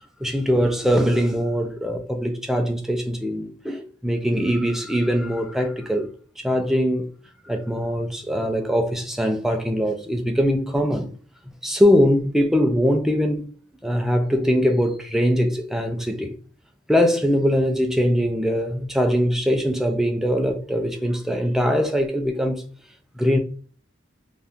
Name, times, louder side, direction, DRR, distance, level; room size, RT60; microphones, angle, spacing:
voice 1, 0.2-6.1 6.4-7.1 7.4-11.1 11.6-13.5 13.8-16.3 16.9-22.6 23.2-23.4, equal, ahead, 0.4 m, -22 dB
2.7 x 2.4 x 3.4 m
head